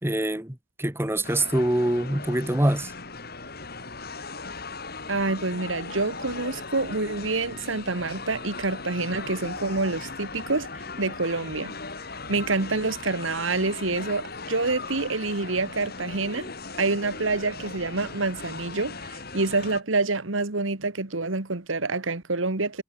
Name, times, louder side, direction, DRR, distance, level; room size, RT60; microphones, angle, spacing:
voice 1, 0.0-2.9, right 1 dB, 10° right, 1.2 m, -25 dB
sound 1, 1.2-19.8, left 3 dB, 50° left, 5.7 m, -38 dB
voice 2, 5.1-10.7 11.0-11.7 12.3-16.5 16.8-22.8, right 3 dB, 80° right, 1.8 m, -27 dB
head